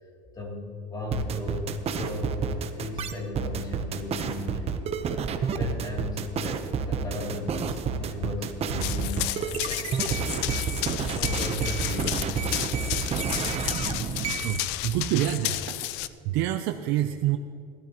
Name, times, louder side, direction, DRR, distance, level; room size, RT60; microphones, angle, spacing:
voice 1, 0.3-4.9 5.5-12.8, left 2 dB, 20° left, -1 dB, 3.0 m, -36 dB
sound 1, 1.1-14.6, right 6 dB, 35° right, 0.9 m, -30 dB
Run, 8.8-16.1, left 15 dB, 70° left, 0.6 m, -32 dB
voice 2, 14.4-17.4, right 12 dB, 70° right, 8 dB, 0.6 m, -27 dB
18.0 x 13.0 x 3.0 m, 2.6 s
cardioid pair, 135°, 19 cm